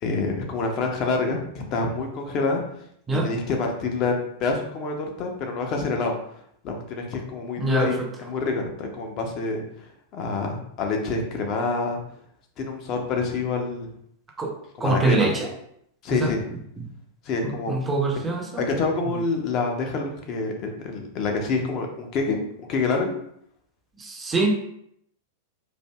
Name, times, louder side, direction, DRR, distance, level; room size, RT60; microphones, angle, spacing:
voice 1, 0.0-2.6 3.2-6.1 6.6-12.0 12.6-13.9 14.8-15.3 16.0-16.4 17.2-17.8 18.6-22.4 22.7-23.2, left 3 dB, 35° left, 3 dB, 0.6 m, -27 dB
voice 2, 7.6-8.1 14.4-14.5 14.8-15.5 16.1-16.3 17.4-18.6 24.0-24.5, right 2 dB, 15° right, 1 dB, 0.6 m, -24 dB
4.3 x 2.6 x 2.2 m, 0.70 s
figure-of-eight pair, 90°, 0 cm